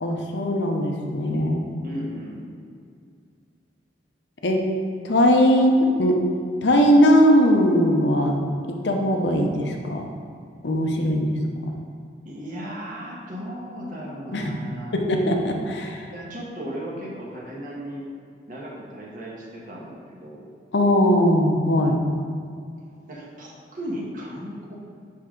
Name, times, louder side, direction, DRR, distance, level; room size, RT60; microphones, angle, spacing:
voice 1, 0.0-1.7 4.4-4.6 5.0-6.2 6.6-8.4 8.7-10.0 10.6-11.4 14.3-14.5 14.9-16.1 20.7-22.0, equal, 75° left, 2 dB, 0.8 m, -20 dB
voice 2, 1.8-2.4 12.2-15.0 16.1-18.0 18.5-20.5 23.1-24.8, equal, 50° right, -4 dB, 1.4 m, -36 dB
10.5 x 3.7 x 3.8 m, 2.3 s
head